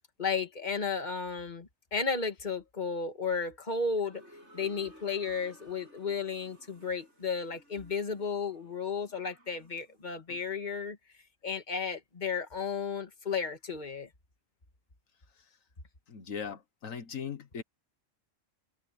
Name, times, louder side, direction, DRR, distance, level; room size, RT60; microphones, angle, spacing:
voice 1, 0.2-4.2 4.5-11.0 11.4-14.1, left 5 dB, 35° left, 2.0 m, -33 dB
sound 1, 4.1-10.0, equal, 60° right, 6.9 m, -57 dB
voice 2, 16.1-17.6, left 7 dB, 85° left, 1.7 m, -39 dB
omnidirectional pair, 1.4 m